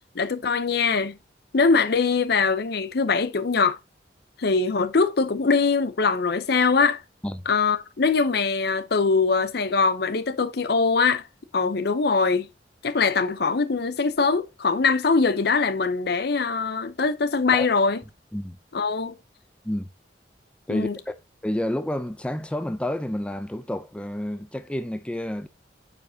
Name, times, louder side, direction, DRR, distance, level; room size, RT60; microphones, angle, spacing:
voice 1, 0.1-1.2 1.5-3.8 4.4-7.0 7.5-11.3 11.5-12.5 12.8-18.0 18.7-19.2 20.7-21.0, left 4 dB, 60° left, 0.6 m, -22 dB
voice 2, 20.7-21.1 21.4-25.5, left 1 dB, 5° left, 0.5 m, -29 dB
9.3 x 5.0 x 2.7 m
head